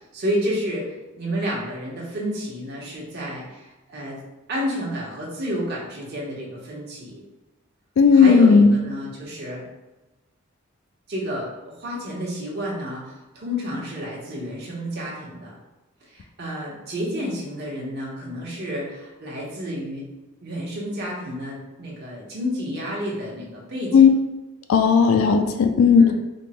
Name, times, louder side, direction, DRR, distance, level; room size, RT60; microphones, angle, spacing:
voice 1, 0.1-0.9 1.2-4.2 4.5-7.2 8.1-9.6 11.1-15.5 16.0-20.1 20.4-24.1 26.0-26.1, equal, 50° right, -5 dB, 0.9 m, -30 dB
voice 2, 8.0-8.7 23.9-24.1 24.7-26.1, left 6 dB, 75° left, 7 dB, 0.3 m, -14 dB
3.5 x 2.0 x 4.1 m, 1.0 s
head